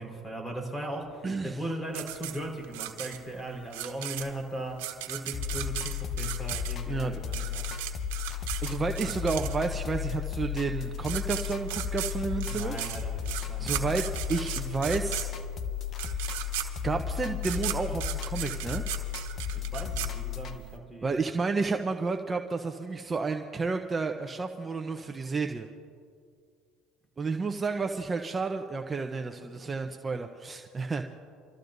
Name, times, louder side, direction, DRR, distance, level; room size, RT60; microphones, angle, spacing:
voice 1, 0.0-7.7 12.4-13.9 19.5-21.1, right 1 dB, 15° left, 1 dB, 4.5 m, -38 dB
voice 2, 1.2-1.6 6.9-7.2 8.6-12.8 13.6-15.3 16.8-18.8 21.0-25.7 27.2-31.0, right 4 dB, 25° right, 4 dB, 0.8 m, -31 dB
sound 1, 1.9-9.9 10.7-10.8 11.0-20.7, right 13 dB, 85° right, 1.2 m, -37 dB
sound 2, 5.3-20.6, left 9 dB, 50° left, 1.1 m, -34 dB
28.0 x 14.0 x 2.7 m, 2.2 s
supercardioid pair, 85°, 0 cm